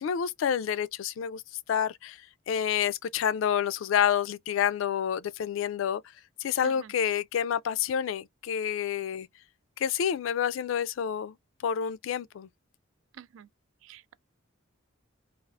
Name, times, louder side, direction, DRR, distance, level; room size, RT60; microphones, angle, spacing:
voice 1, 0.0-1.4 1.7-2.2 2.5-6.0 6.4-9.3 9.8-11.3 11.6-12.5, left 8 dB, 70° left, 0.3 m, -28 dB
voice 2, 13.2-13.5 13.8-14.1, right 9 dB, 75° right, 0.4 m, -48 dB
3.3 x 2.4 x 2.3 m
head